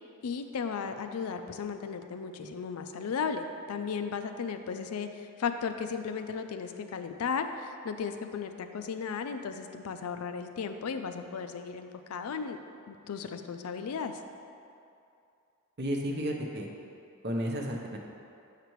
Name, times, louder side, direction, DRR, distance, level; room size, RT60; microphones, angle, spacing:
voice 1, 0.2-12.6 12.9-14.2, left 6 dB, 90° left, 7 dB, 0.4 m, -35 dB
voice 2, 15.8-16.7 17.2-18.0, equal, 50° right, 1 dB, 0.7 m, -32 dB
6.7 x 6.6 x 3.1 m, 2.6 s
head